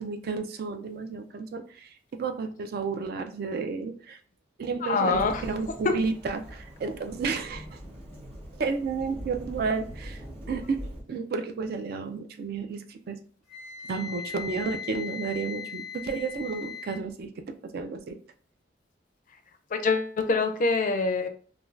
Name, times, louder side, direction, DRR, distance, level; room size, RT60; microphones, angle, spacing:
voice 1, 0.0-4.2 4.6-7.7 8.6-10.2 10.5-10.8 11.1-13.2 13.8-17.3 17.7-18.2, right 4 dB, 55° right, 7 dB, 0.3 m, -32 dB
voice 2, 4.8-5.4 5.8-5.9 19.7-21.3, left 4 dB, 45° left, 7 dB, 0.4 m, -25 dB
Thunderstorm / Rain, 5.1-11.0, equal, 35° right, 1.0 m, -42 dB
Wind instrument woodwind instrument, 13.5-17.0, left 7 dB, ahead, 0.6 m, -39 dB
2.5 x 2.2 x 3.1 m, 0.42 s
head